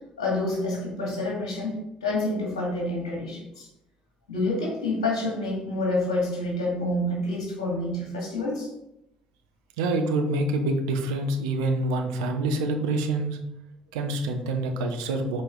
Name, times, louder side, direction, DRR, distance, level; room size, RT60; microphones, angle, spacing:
voice 1, 0.2-3.7 4.3-8.7, left 2 dB, 75° left, -3 dB, 2.1 m, -28 dB
voice 2, 9.8-13.4 13.9-15.4, right 2 dB, 70° right, 4 dB, 0.9 m, -26 dB
7.4 x 4.5 x 3.7 m, 0.82 s
figure-of-eight pair, 50°, 3 cm